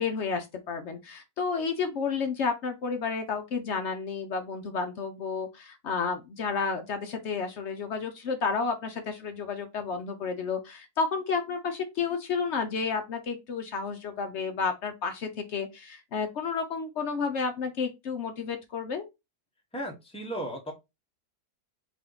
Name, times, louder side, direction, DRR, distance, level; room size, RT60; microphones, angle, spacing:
voice 1, 0.0-19.1, left 5 dB, 65° left, 0.7 m, -31 dB
voice 2, 19.7-20.7, right 1 dB, 5° left, 0.4 m, -35 dB
3.5 x 2.6 x 3.7 m
omnidirectional pair, 1.8 m